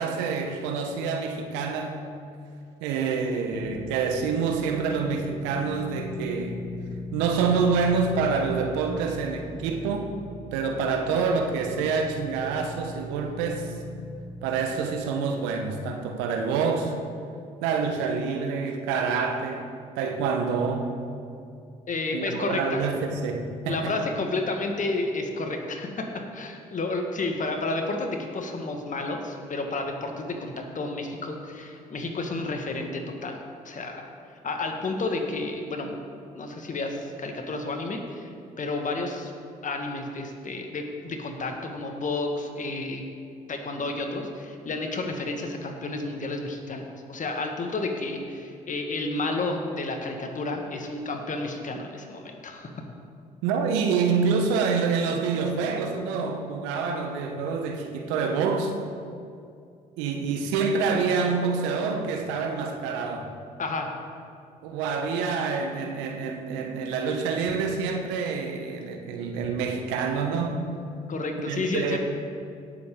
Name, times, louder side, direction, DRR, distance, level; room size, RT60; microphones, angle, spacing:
voice 1, 0.0-2.0 2.8-6.6 7.1-10.1 10.5-13.8 14.4-16.9 17.6-19.7 20.0-20.9 22.1-24.0 53.4-58.7 60.0-63.3 64.6-70.6 71.4-72.0, right 5 dB, 75° right, 4 dB, 1.1 m, -27 dB
sound 1, 3.5-14.7, left 1 dB, 85° left, 1.4 m, -39 dB
voice 2, 21.9-22.8 23.7-26.1 26.3-34.1 34.4-35.9 36.3-38.3 38.6-39.3 39.6-43.0 43.5-52.7 63.6-63.9 71.1-72.0, left 2 dB, 45° left, 3 dB, 1.8 m, -31 dB
17.0 x 7.6 x 3.8 m, 2.4 s
hypercardioid pair, 50°, 19 cm